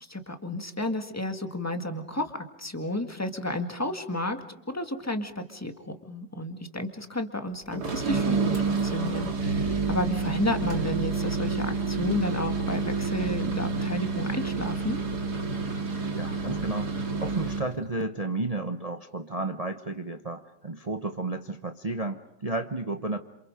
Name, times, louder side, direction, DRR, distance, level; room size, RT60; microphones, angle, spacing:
voice 1, 0.1-15.0, left 1 dB, 10° left, 6 dB, 1.8 m, -32 dB
sound 1, 7.7-17.7, right 4 dB, 65° right, 3.0 m, -29 dB
voice 2, 15.8-23.2, right 2 dB, 25° right, 6 dB, 0.9 m, -32 dB
28.0 x 28.0 x 5.1 m, 0.78 s
omnidirectional pair, 1.9 m